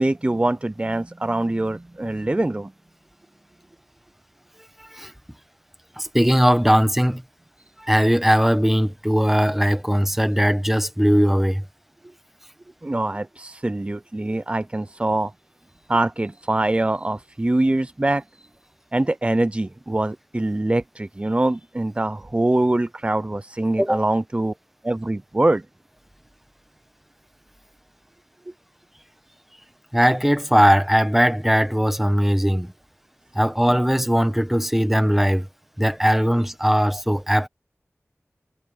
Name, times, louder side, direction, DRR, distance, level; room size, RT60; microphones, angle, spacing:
voice 1, 0.0-2.7 12.8-15.3 15.9-18.2 18.9-24.5 24.8-25.6, right 2 dB, 25° right, 0.5 m, -23 dB
voice 2, 4.8-5.1 6.0-7.2 7.8-11.6 23.8-24.0 29.9-32.7 33.3-35.5 35.8-37.5, equal, 5° right, 1.4 m, -19 dB
wide cardioid pair, 45°, 5 cm